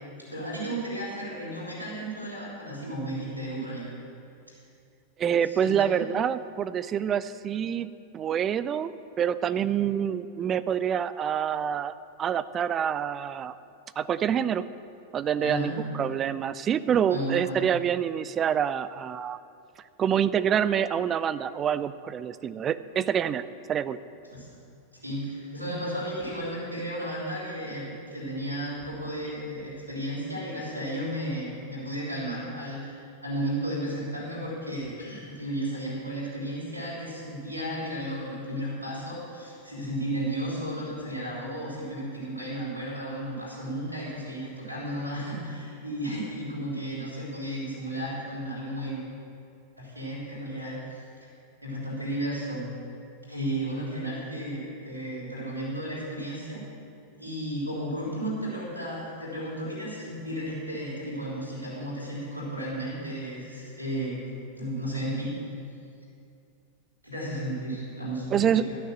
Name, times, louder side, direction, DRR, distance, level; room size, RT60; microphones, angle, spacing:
voice 1, 0.2-3.9 5.6-5.7 15.4-15.8 17.1-17.6 24.3-24.5 24.9-49.0 49.8-51.0 51.6-52.7 53.3-56.6 57.1-64.2 64.5-65.3 67.0-68.3 68.5-68.8, right 1 dB, 85° left, -7 dB, 3.3 m, -33 dB
voice 2, 5.2-7.9 8.1-13.5 14.0-14.7 15.1-19.4 20.0-24.0 68.3-68.7, right 8 dB, 25° right, 15 dB, 0.4 m, -27 dB
12.0 x 6.4 x 7.5 m, 2.5 s
figure-of-eight pair, 90°, 0 cm